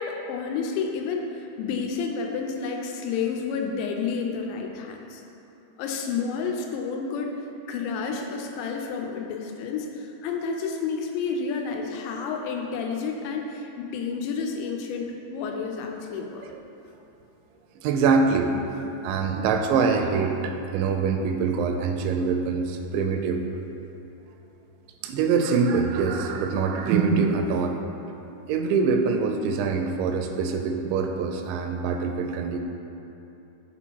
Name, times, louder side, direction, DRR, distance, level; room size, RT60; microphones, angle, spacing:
voice 1, 0.0-5.2 5.8-7.4 7.7-16.4, left 5 dB, 90° left, 2 dB, 2.9 m, -30 dB
voice 2, 17.8-23.4 25.0-27.8 28.5-32.6, right 5 dB, 85° right, 5 dB, 2.8 m, -24 dB
7.2 x 4.3 x 4.5 m, 3.0 s
omnidirectional pair, 5.1 m